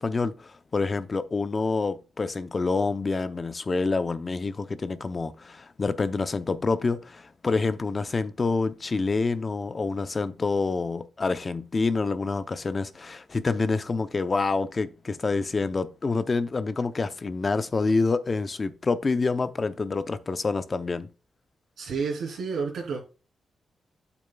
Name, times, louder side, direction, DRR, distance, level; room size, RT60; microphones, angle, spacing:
voice 1, 0.0-21.1, left 3 dB, 35° left, 0.6 m, -27 dB
voice 2, 21.8-23.0, right 5 dB, 80° right, 3.0 m, -30 dB
8.7 x 7.0 x 2.3 m
cardioid pair, 95°, 0 cm